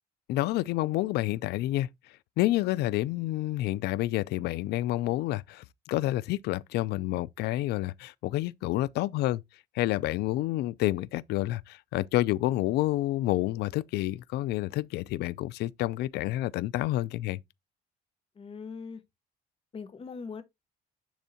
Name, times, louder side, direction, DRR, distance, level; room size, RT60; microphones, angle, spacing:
voice 1, 0.3-1.9 2.4-9.4 9.7-17.4, left 16 dB, 75° left, 0.4 m, -29 dB
voice 2, 18.4-19.0 19.7-20.4, left 5 dB, 35° left, 1.1 m, -40 dB
10.0 x 3.6 x 2.8 m
cardioid pair, 110°, 17 cm